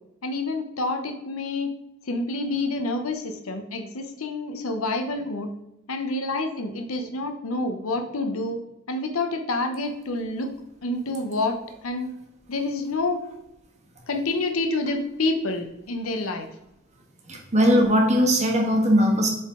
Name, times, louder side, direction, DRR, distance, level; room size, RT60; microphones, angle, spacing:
voice 1, 0.2-1.7 2.1-5.5 5.9-8.6 8.9-10.5 10.8-11.6 11.8-12.1 12.5-13.2 14.1-16.5, left 2 dB, 75° left, 6 dB, 0.8 m, -28 dB
voice 2, 17.3-19.3, equal, 30° right, 1 dB, 1.3 m, -19 dB
7.7 x 3.8 x 3.7 m, 0.86 s
head